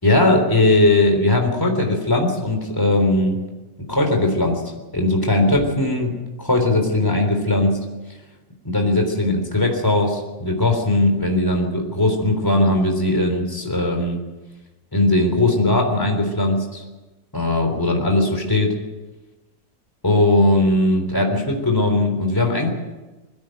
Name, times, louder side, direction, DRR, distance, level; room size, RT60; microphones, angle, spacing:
voice 1, 0.0-3.4 3.9-4.6 4.9-7.8 8.6-14.2 14.9-16.8 17.3-18.8 20.0-22.7, left 2 dB, 10° left, 3 dB, 3.6 m, -19 dB
21.5 x 16.0 x 7.9 m, 1.1 s
omnidirectional pair, 1.7 m